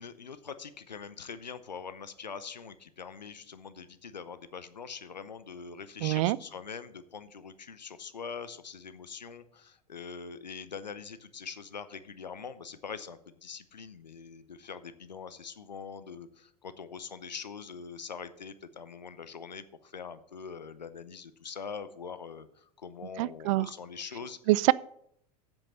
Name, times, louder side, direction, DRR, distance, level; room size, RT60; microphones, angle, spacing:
voice 1, 0.0-24.4, left 6 dB, 85° left, 0.7 m, -43 dB
voice 2, 6.0-6.4 23.2-23.7 24.5-24.7, right 19 dB, 50° right, 0.4 m, -24 dB
8.0 x 7.1 x 6.6 m
figure-of-eight pair, 85°, 21 cm